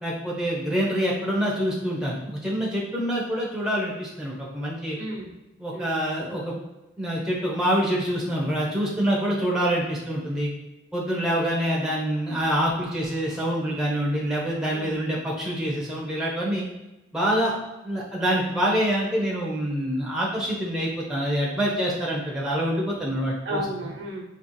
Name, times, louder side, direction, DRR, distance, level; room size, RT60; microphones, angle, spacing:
voice 1, 0.0-5.0 5.6-6.6 7.0-10.5 10.9-16.7 17.1-17.5 17.8-23.6, equal, 5° right, -4 dB, 0.8 m, -26 dB
voice 2, 5.0-5.3 5.7-6.0 11.1-11.3 14.7-15.0 17.2-17.5 23.4-24.2, right 1 dB, 80° right, 0 dB, 1.0 m, -34 dB
4.1 x 3.0 x 3.2 m, 1.0 s
head